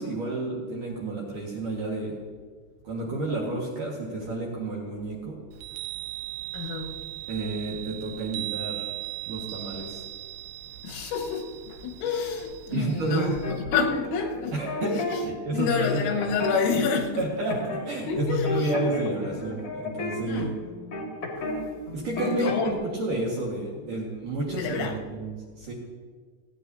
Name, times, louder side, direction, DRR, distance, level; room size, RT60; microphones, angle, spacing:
voice 1, 0.0-2.2 2.8-5.4 7.3-8.9 9.3-10.0 12.7-13.3 14.5-16.0 17.2-20.5 21.9-25.7, right 2 dB, 55° right, 2.5 m, -31 dB
Chime, 5.5-13.6, right 17 dB, 85° right, 3.1 m, -38 dB
voice 2, 6.5-6.9 10.8-13.3 13.7-17.3 18.1-18.7 20.3-20.6 22.3-22.7 24.5-25.0, left 5 dB, 85° left, 3.9 m, -29 dB
sound 1, 13.4-15.1 15.6-16.8 17.5-17.9 18.1-21.6 21.9-22.7, left 3 dB, 50° left, 1.8 m, -31 dB
29.5 x 10.0 x 2.7 m
omnidirectional pair, 5.7 m